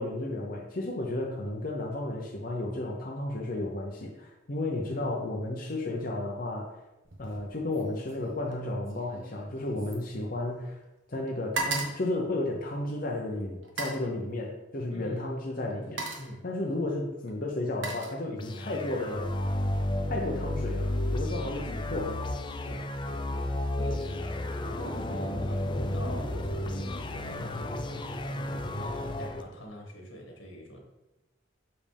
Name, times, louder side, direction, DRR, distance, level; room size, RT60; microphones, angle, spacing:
voice 1, 0.0-6.7 7.2-10.8 11.1-16.0 16.4-19.3 20.1-22.2, left 2 dB, 45° left, -2 dB, 0.8 m, -33 dB
sound 1, 7.0-7.4 7.7-10.8 11.1-13.0 13.6-14.1 15.1-15.3 15.7-16.4 17.3-18.7 19.0-19.4, right 3 dB, 75° right, 1.2 m, -38 dB
voice 2, 14.9-15.2 15.6-15.7 16.2-16.5 21.5-22.0 22.6-30.8, equal, 85° left, 0 dB, 1.8 m, -45 dB
sound 2, 18.4-29.4, left 1 dB, 25° left, 0.4 m, -32 dB
7.0 x 5.3 x 3.4 m, 0.97 s
head